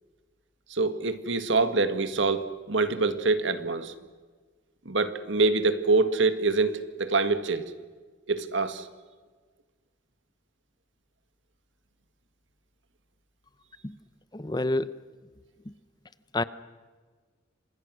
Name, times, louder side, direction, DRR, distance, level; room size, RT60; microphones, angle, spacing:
voice 1, 0.7-3.9 4.9-7.6 8.3-8.9, right 3 dB, 80° right, 10 dB, 1.9 m, -25 dB
voice 2, 14.3-15.0 15.7-15.8 16.3-16.4, left 2 dB, 20° left, 14 dB, 0.7 m, -28 dB
29.5 x 27.0 x 6.4 m, 1.4 s
head